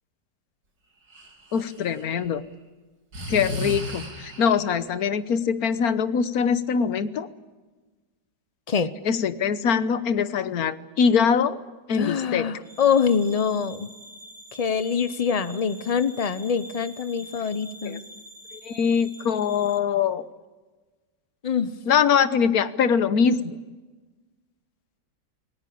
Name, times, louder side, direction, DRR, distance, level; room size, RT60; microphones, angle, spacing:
Breathing, 1.1-2.3 3.1-4.7, equal, 85° right, 3.9 m, -34 dB
voice 1, 1.5-2.4 3.3-7.3 9.0-11.6 11.9-12.5 17.8-18.0 18.6-20.2 21.9-23.6, left 6 dB, 60° left, 13 dB, 1.5 m, -23 dB
voice 2, 11.9-13.9 14.5-18.0 21.4-21.7, left 6 dB, 35° left, 13 dB, 0.6 m, -24 dB
sound 1, 12.6-19.8, equal, 45° right, 2.1 m, -45 dB
27.0 x 18.5 x 8.6 m, 1.3 s
omnidirectional pair, 1.8 m